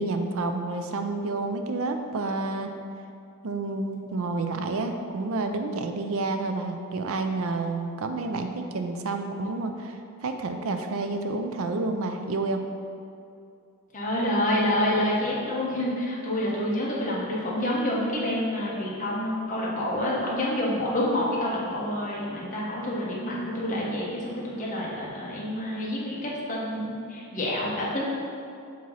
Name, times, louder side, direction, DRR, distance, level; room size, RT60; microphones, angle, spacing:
voice 1, 0.0-2.7 3.4-12.6, right 3 dB, 65° right, 6 dB, 0.5 m, -29 dB
voice 2, 13.9-28.1, left 1 dB, 35° left, -5 dB, 1.3 m, -28 dB
7.4 x 3.0 x 5.5 m, 2.5 s
head